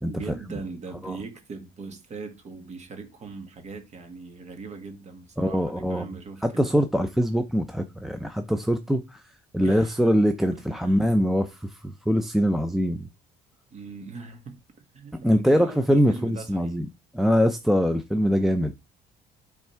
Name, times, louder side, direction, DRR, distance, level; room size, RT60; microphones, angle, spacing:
voice 1, 0.0-6.8 9.6-10.1 10.5-11.0 13.7-14.6 14.9-16.8, right 4 dB, 40° right, 1.6 m, -40 dB
voice 2, 5.4-6.0 6.4-9.2 9.5-13.1 15.2-16.9 17.1-18.7, equal, ahead, 0.5 m, -23 dB
8.9 x 3.6 x 4.4 m
cardioid pair, 110°, 17 cm